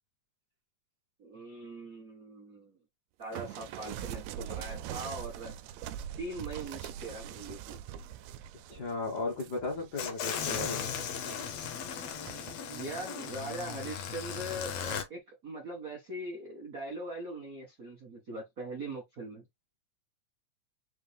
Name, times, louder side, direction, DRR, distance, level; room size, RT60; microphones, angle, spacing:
voice 1, 1.2-2.8 3.2-5.5 6.2-8.0 12.7-19.4, right 1 dB, 70° right, 0.8 m, -41 dB
sound 1, 3.3-10.3 10.8-11.4 12.3-12.6, right 10 dB, 85° right, 1.5 m, -42 dB
voice 2, 8.7-10.9, left 3 dB, 85° left, 0.9 m, -35 dB
sound 2, 10.0-15.0, left 7 dB, 70° left, 1.6 m, -37 dB
5.6 x 2.5 x 3.4 m
omnidirectional pair, 3.6 m